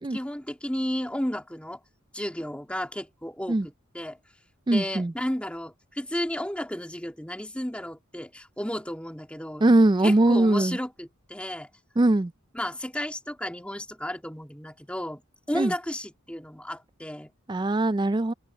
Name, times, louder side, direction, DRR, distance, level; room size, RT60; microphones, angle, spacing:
voice 1, 0.1-1.8 2.1-3.6 3.9-4.2 4.7-9.7 10.0-11.7 12.5-15.2 15.5-17.3, equal, 5° left, 1.8 m, -33 dB
voice 2, 4.7-5.1 9.6-10.8 12.0-12.3 15.5-15.7 17.5-18.3, right 2 dB, 20° right, 0.4 m, -21 dB
open air
head